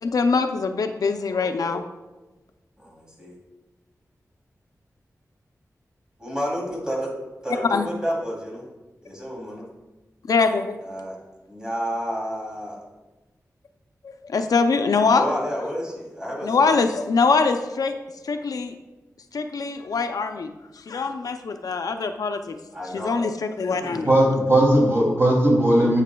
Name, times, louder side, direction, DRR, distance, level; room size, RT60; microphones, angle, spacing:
voice 1, 0.0-1.9 7.7-7.9 10.3-10.8 14.0-15.3 16.4-17.9 18.2-18.8 19.3-20.5 20.8-22.6 22.9-24.1, left 4 dB, 80° left, 7 dB, 0.5 m, -23 dB
voice 2, 2.8-3.3 6.2-7.1 7.4-8.6 9.0-9.7 10.8-11.2 11.5-12.8 15.1-16.8 22.7-23.1 23.7-23.8, equal, 15° right, -4 dB, 2.9 m, -30 dB
voice 3, 24.1-26.0, right 1 dB, 45° right, -2 dB, 2.5 m, -18 dB
10.5 x 8.3 x 2.3 m, 1.1 s
wide cardioid pair, 110°, 6 cm